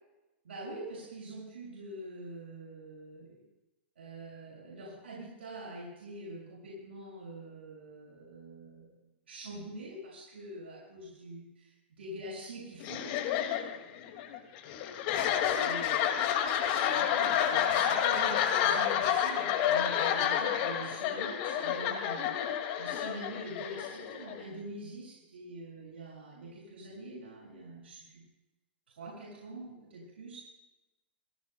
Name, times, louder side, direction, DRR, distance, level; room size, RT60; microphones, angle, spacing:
voice 1, 0.4-3.4 4.0-8.9 9.3-13.2 15.4-22.3 22.8-28.2 29.0-30.4, right 1 dB, 85° right, -5 dB, 6.8 m, -45 dB
sound 1, 12.8-24.5, left 9 dB, 50° left, 2.2 m, -29 dB
26.0 x 17.0 x 2.3 m, 0.99 s
hypercardioid pair, 125°, 6 cm